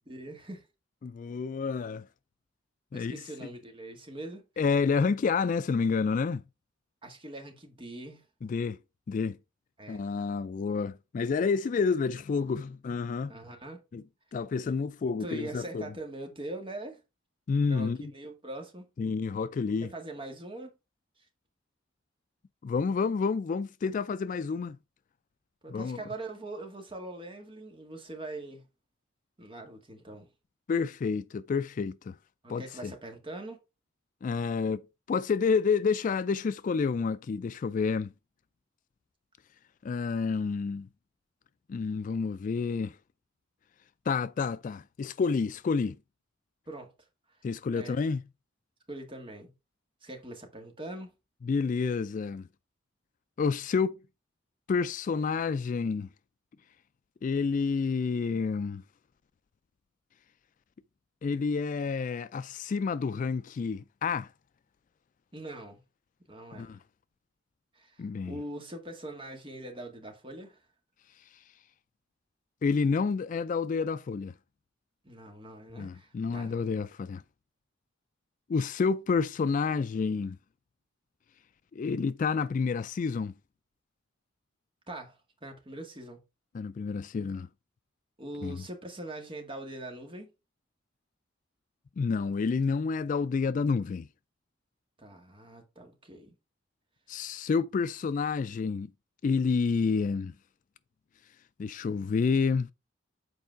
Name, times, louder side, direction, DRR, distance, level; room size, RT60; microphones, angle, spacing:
voice 1, 0.1-0.7 2.9-4.5 7.0-8.2 9.8-10.1 13.3-13.8 15.2-17.0 17.7-18.9 19.8-20.7 25.6-28.6 29.4-30.3 32.4-33.6 46.7-46.9 47.7-48.1 48.9-49.5 50.0-51.1 65.3-65.8 66.3-66.7 67.7-70.6 75.0-76.5 84.9-85.2 85.4-86.2 88.2-90.3 95.0-96.3, right 1 dB, 25° right, 1.9 m, -42 dB
voice 2, 1.0-2.0 2.9-3.2 4.6-6.4 8.4-8.8 9.1-9.4 9.9-13.3 13.9-14.0 14.3-15.9 17.5-18.1 19.0-19.9 22.6-24.8 25.7-26.0 30.7-32.1 32.5-32.9 34.2-38.1 39.8-40.9 41.7-43.0 44.1-46.0 47.4-48.2 51.4-52.4 53.4-54.0 54.7-56.1 57.2-58.8 61.2-64.3 66.5-66.8 68.0-68.4 72.6-74.3 75.7-77.2 78.5-80.4 81.7-83.3 86.5-87.5 88.4-88.6 92.0-94.1 97.1-98.9 99.2-100.3 101.6-102.7, left 5 dB, 40° left, 0.3 m, -29 dB
8.0 x 4.6 x 4.5 m
head